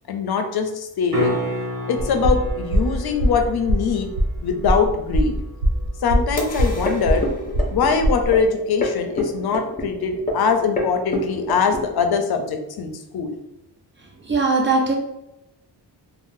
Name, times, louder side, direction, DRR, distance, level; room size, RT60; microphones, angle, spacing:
voice 1, 0.1-1.4 1.9-4.1 4.4-5.4 6.0-7.2 7.7-13.3, left 5 dB, 60° left, 5 dB, 0.5 m, -22 dB
sound 1, 1.1-7.1 11.8-11.9, equal, 60° right, 1.1 m, -32 dB
sound 2, 2.0-8.4, equal, 85° right, 0.7 m, -22 dB
sound 3, 6.1-12.2, left 1 dB, 20° left, 0.6 m, -29 dB
voice 2, 14.3-14.9, right 3 dB, 25° right, 0 dB, 0.6 m, -19 dB
3.5 x 2.0 x 2.6 m, 0.89 s
cardioid pair, 95°, 42 cm